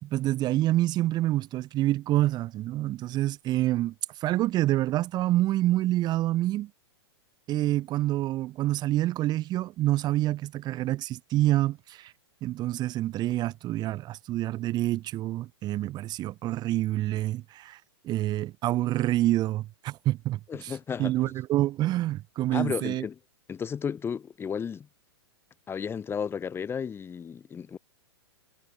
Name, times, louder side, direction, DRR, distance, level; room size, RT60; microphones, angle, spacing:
voice 1, 0.0-6.7 7.5-12.1 12.4-23.0, right 15 dB, 30° right, 1.5 m, -27 dB
voice 2, 20.5-21.3 22.5-23.2 23.5-24.9 25.7-27.8, left 7 dB, 15° left, 2.0 m, -33 dB
hypercardioid pair, 130°, 14 cm